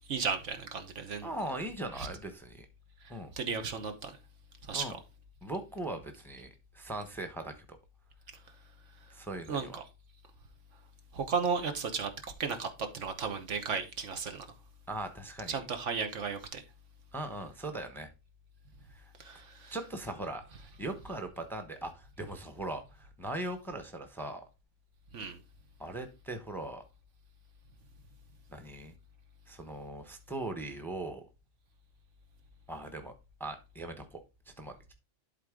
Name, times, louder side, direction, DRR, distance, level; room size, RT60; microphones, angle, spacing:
voice 1, 0.1-1.3 1.9-2.1 3.0-4.2 4.7-4.9 9.5-9.8 11.1-12.1 12.4-14.5 15.5-16.6 19.2-19.7 25.1-25.4, right 5 dB, 75° right, 1.4 m, -34 dB
voice 2, 1.2-2.7 3.1-3.3 4.7-5.0 5.4-7.8 9.1-9.8 14.9-15.6 17.1-18.1 18.9-19.0 19.7-20.4 20.8-24.4 25.8-26.8 28.5-28.9 29.5-31.2 32.7-33.1 33.4-34.9, right 1 dB, ahead, 0.9 m, -40 dB
11.5 x 3.9 x 3.7 m
omnidirectional pair, 1.3 m